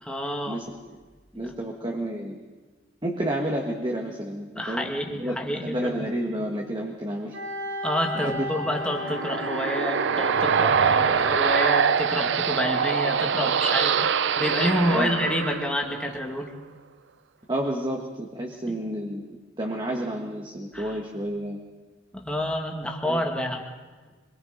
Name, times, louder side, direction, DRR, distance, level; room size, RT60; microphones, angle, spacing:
voice 1, 0.0-0.6 1.4-1.5 4.6-6.0 7.8-14.0 14.4-16.5 18.7-18.8 20.7-21.0 22.1-23.6, equal, 5° left, 1 dB, 2.1 m, -28 dB
voice 2, 1.3-2.4 3.0-7.4 8.1-8.5 14.9-15.1 17.5-19.3 19.6-21.6 23.0-23.2, right 1 dB, 25° right, 0 dB, 1.6 m, -30 dB
Wind instrument woodwind instrument, 7.3-12.1, left 2 dB, 80° right, 6.2 m, -35 dB
sound 1, 8.6-16.2, right 6 dB, 65° right, 0.6 m, -24 dB
25.0 x 22.5 x 5.2 m, 1.3 s
head